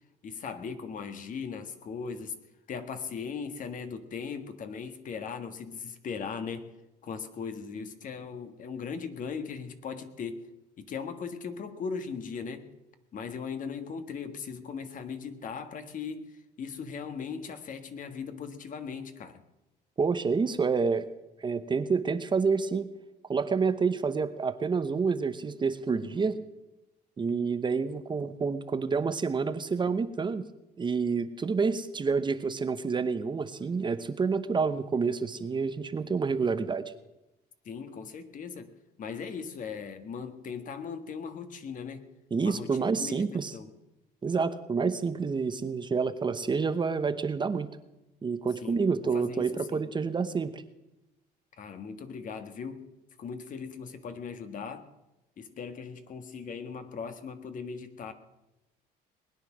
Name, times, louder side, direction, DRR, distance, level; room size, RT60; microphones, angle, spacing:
voice 1, 0.2-2.4 2.7-6.7 7.0-10.4 10.8-12.6 13.1-19.4 37.7-38.7 39.0-42.1 42.4-43.7 48.6-49.9 51.6-52.9 53.2-54.9 55.4-58.1, left 6 dB, 50° left, 8 dB, 1.6 m, -38 dB
voice 2, 20.0-21.0 21.4-22.9 23.3-26.4 27.2-30.5 30.8-36.9 42.3-43.5 44.2-47.7 48.2-50.6, right 5 dB, 25° right, 11 dB, 0.9 m, -28 dB
20.5 x 9.9 x 6.2 m, 0.97 s
cardioid pair, 110°, 17 cm